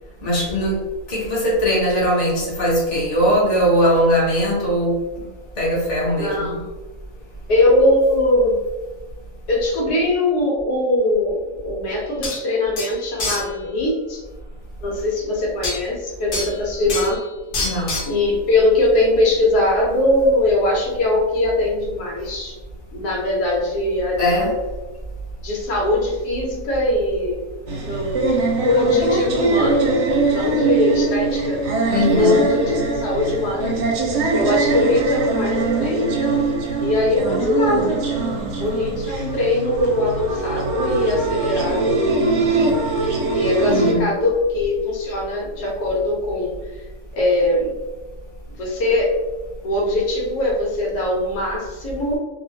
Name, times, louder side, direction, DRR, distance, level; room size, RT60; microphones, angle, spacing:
voice 1, 0.2-0.8 1.1-5.0 5.6-6.5 17.6-17.9 24.2-24.5 31.9-32.5 43.7-44.1, equal, 30° left, -6 dB, 0.9 m, -20 dB
voice 2, 6.2-6.6 7.5-8.6 9.5-14.2 14.8-17.2 18.1-22.5 22.9-24.6 25.4-27.4 27.8-29.9 30.3-31.6 31.9-33.8 34.3-36.4 36.8-38.0 38.6-42.0 43.3-46.8 47.1-47.7 48.6-49.1 49.6-52.2, left 2 dB, 80° left, -3 dB, 1.3 m, -21 dB
sound 1, 11.9-12.0 12.2-12.4 12.8-13.5 15.6-15.8 16.3-16.6 16.9-17.2 17.5-18.1, left 2 dB, 60° left, 0.5 m, -26 dB
sound 2, 27.7-43.9, right 3 dB, 60° right, 0.8 m, -22 dB
2.9 x 2.4 x 2.7 m, 1.1 s
omnidirectional pair, 1.7 m